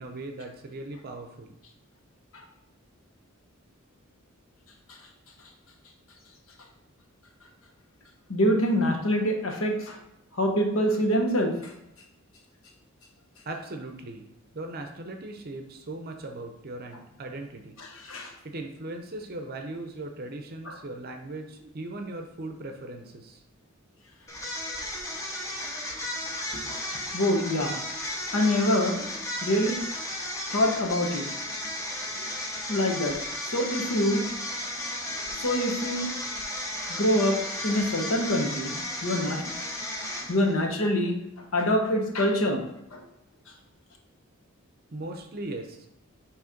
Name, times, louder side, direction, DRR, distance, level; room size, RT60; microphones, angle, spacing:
voice 1, 0.0-1.6 13.5-14.2 14.5-17.8 18.4-23.4 44.9-46.0, right 2 dB, 45° right, 4 dB, 0.6 m, -38 dB
voice 2, 8.3-10.0 10.4-11.5 17.8-18.3 20.7-20.8 25.5-25.7 26.5-27.8 28.1-29.1 29.4-29.8 30.5-31.2 32.7-33.2 33.5-34.2 35.2-36.1 36.8-39.4 40.3-41.1 41.5-42.6 42.9-43.0, equal, 70° left, 2 dB, 1.1 m, -25 dB
sound 1, 24.3-40.6, left 1 dB, 15° left, 0.8 m, -34 dB
6.4 x 3.1 x 5.1 m, 0.86 s
head